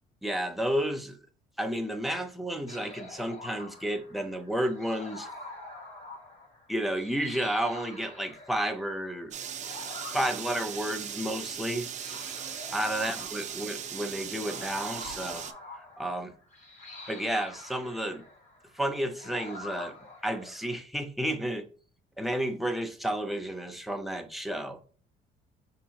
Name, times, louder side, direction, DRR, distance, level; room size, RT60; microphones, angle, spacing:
voice 1, 0.2-1.2 1.6-5.3 6.7-9.3 10.1-11.9 12.7-15.4 15.8-16.3 17.1-18.2 18.7-19.9 20.2-21.7 22.2-24.8, right 1 dB, ahead, 0.6 m, -31 dB
sound 1, 2.7-20.7, left 2 dB, 45° left, 1.2 m, -46 dB
sound 2, 9.3-15.5, right 8 dB, 45° right, 0.5 m, -38 dB
5.5 x 2.7 x 2.8 m
cardioid pair, 110°, 17 cm